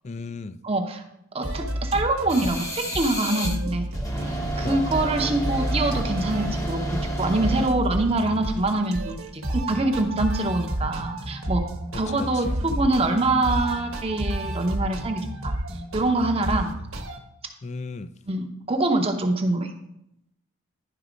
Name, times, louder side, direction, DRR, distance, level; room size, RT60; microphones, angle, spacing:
voice 1, 0.0-0.6 4.6-4.9 11.9-12.8 17.6-18.1, left 4 dB, 30° left, 13 dB, 0.3 m, -36 dB
voice 2, 0.6-1.0 1.3-3.9 4.6-11.6 12.0-15.5 15.9-16.7 18.3-19.7, right 2 dB, 25° right, 4 dB, 0.7 m, -25 dB
sound 1, 1.4-17.2, right 1 dB, 75° right, 1.1 m, -31 dB
sound 2, 2.3-3.6 3.9-7.7, right 1 dB, 15° left, 0.9 m, -30 dB
11.0 x 4.0 x 5.1 m, 0.80 s
head